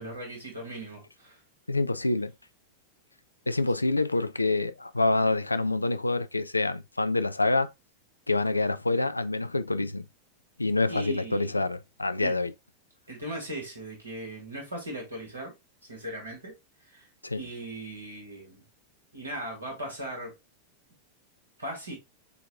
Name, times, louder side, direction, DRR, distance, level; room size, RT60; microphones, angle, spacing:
voice 1, 0.0-1.4 10.9-11.6 12.2-12.3 13.1-15.5 15.9-16.6 16.8-17.1 17.4-18.6 19.1-20.3 21.6-21.9, right 1 dB, 75° right, 2.6 m, -38 dB
voice 2, 1.7-2.3 3.5-7.7 8.3-10.0 10.6-12.5 17.2-17.4, left 2 dB, 85° left, 0.4 m, -26 dB
6.8 x 2.9 x 2.3 m
figure-of-eight pair, 90°, 0 cm